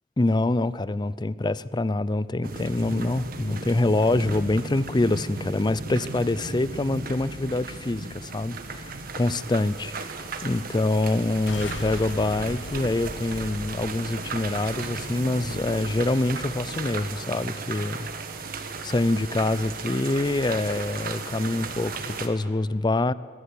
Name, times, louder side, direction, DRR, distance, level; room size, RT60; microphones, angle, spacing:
voice 1, 0.2-9.9 10.4-18.1 18.8-23.1, left 2 dB, 25° left, 18 dB, 0.5 m, -25 dB
sound 1, 2.4-22.3, right 3 dB, 55° right, 1.6 m, -36 dB
sound 2, 11.2-16.2, left 2 dB, 85° left, 1.6 m, -40 dB
22.0 x 14.5 x 8.4 m, 2.2 s
head